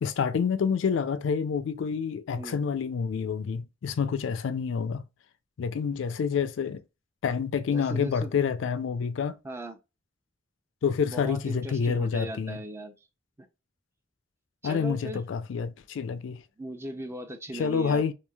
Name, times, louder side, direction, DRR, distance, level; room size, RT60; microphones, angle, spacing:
voice 1, 0.0-5.0 5.6-6.8 7.2-9.4 10.8-12.6 14.6-16.4 17.5-18.1, left 6 dB, 90° left, 0.4 m, -28 dB
voice 2, 7.7-8.3 9.4-9.8 11.0-12.9 13.4-13.5 14.6-15.2 16.6-18.0, right 1 dB, 15° right, 0.4 m, -38 dB
3.0 x 2.4 x 2.2 m
head